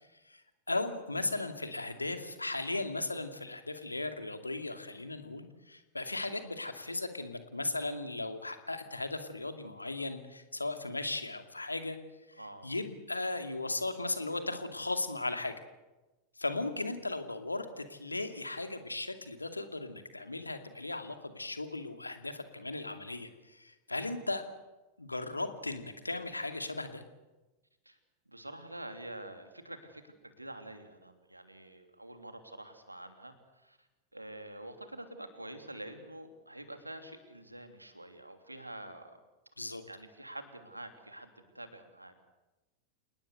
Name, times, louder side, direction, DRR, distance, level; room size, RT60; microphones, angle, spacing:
voice 1, 0.7-12.0 12.6-15.5 16.4-24.4 25.0-27.0 39.6-39.8, left 2 dB, 80° left, 7 dB, 2.4 m, -37 dB
voice 2, 12.3-12.7 16.5-16.6 27.8-28.0 28.3-33.9 34.1-39.2 39.9-42.2, right 1 dB, 85° right, 7 dB, 3.0 m, -47 dB
28.5 x 19.0 x 8.0 m, 1.1 s
figure-of-eight pair, 90°, 0 cm